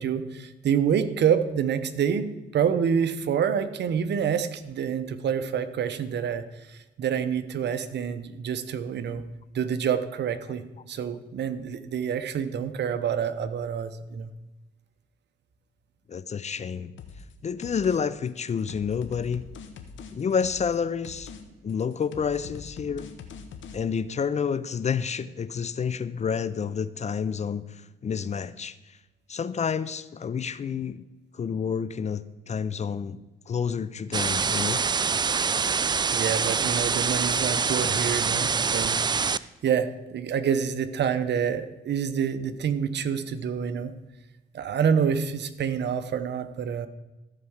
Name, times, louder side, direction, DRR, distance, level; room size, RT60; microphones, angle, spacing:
voice 1, 0.0-9.2 9.5-14.3 36.1-39.0 39.6-43.9 44.5-46.9, right 7 dB, 60° right, 0.9 m, -27 dB
voice 2, 16.1-16.9 17.4-19.5 20.1-21.3 21.6-23.1 23.7-29.0 29.3-31.0 31.3-33.2 33.5-34.8 38.6-38.7, left 6 dB, 35° left, 0.5 m, -29 dB
sound 1, 17.0-17.3 17.6-18.0 18.3-20.8 21.0-21.4 21.7-23.8, left 5 dB, 70° left, 1.3 m, -43 dB
sound 2, 34.1-39.4, right 5 dB, 20° right, 0.3 m, -25 dB
14.0 x 4.7 x 7.2 m
cardioid pair, 90°, 20 cm